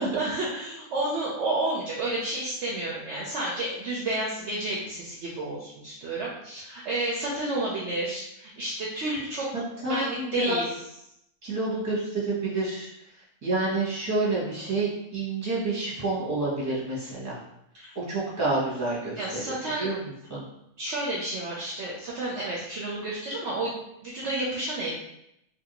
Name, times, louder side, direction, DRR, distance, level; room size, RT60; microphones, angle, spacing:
voice 1, 0.0-9.5 9.9-10.6 14.6-14.7 17.7-17.9 19.2-19.9 20.8-23.8 24.0-25.0, right 2 dB, 65° right, -5 dB, 0.8 m, -31 dB
voice 2, 9.8-10.6 11.4-12.9 13.4-17.4 17.9-20.0 20.3-20.4, right 2 dB, 15° right, -7 dB, 0.8 m, -28 dB
2.8 x 2.5 x 2.9 m, 0.78 s
omnidirectional pair, 1.5 m